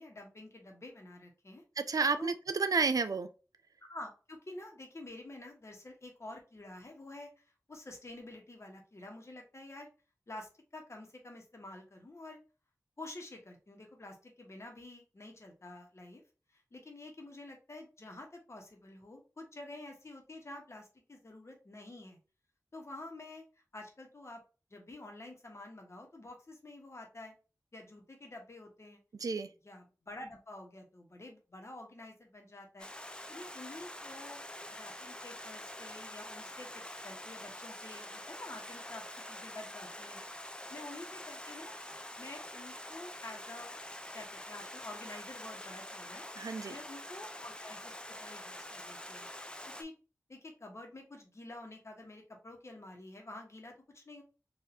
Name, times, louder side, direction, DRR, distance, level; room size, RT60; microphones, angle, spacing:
voice 1, 0.0-1.6 2.2-2.3 3.8-9.9 10.3-12.4 13.0-16.2 16.5-22.2 22.7-23.4 23.7-24.4 24.7-27.4 27.7-29.0 29.6-32.9 33.3-34.4 34.7-40.2 40.7-41.7 42.2-43.8 44.1-46.3 46.7-49.3 49.7-49.9 50.3-54.2, left 2 dB, 50° left, 1.1 m, -49 dB
voice 2, 1.8-3.3 29.2-29.5 46.4-46.8, right 4 dB, 75° right, 0.4 m, -31 dB
Stream, 32.8-49.8, left 1 dB, 15° left, 0.4 m, -46 dB
4.2 x 2.6 x 2.7 m
wide cardioid pair, 70°, 6 cm